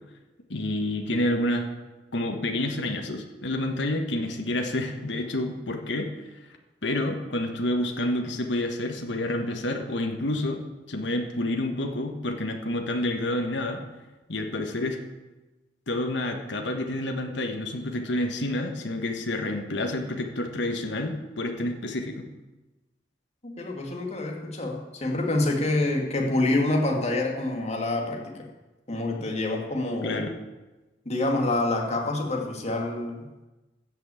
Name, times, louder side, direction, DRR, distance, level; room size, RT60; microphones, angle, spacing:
voice 1, 0.5-1.7 2.1-6.1 6.8-10.6 10.9-13.8 14.3-15.0 15.9-22.3 30.0-30.3, left 1 dB, 80° left, 4 dB, 1.4 m, -29 dB
voice 2, 23.4-28.4 28.9-30.3 31.1-33.5, left 2 dB, 40° left, 1 dB, 2.2 m, -27 dB
14.0 x 6.0 x 8.3 m, 1.1 s
head